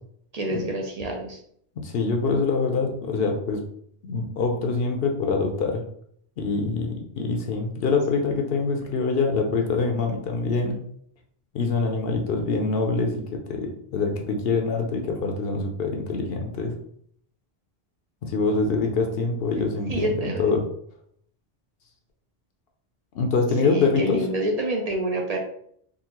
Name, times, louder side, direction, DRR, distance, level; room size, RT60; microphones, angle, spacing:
voice 1, 0.3-1.4 19.9-20.5 23.6-25.4, right 1 dB, 50° right, 1 dB, 0.5 m, -27 dB
voice 2, 1.8-3.6 4.0-5.8 6.4-10.8 11.5-16.7 18.2-20.6 23.1-24.3, left 4 dB, 70° left, 2 dB, 0.8 m, -25 dB
3.8 x 2.4 x 2.9 m, 0.67 s
omnidirectional pair, 1.0 m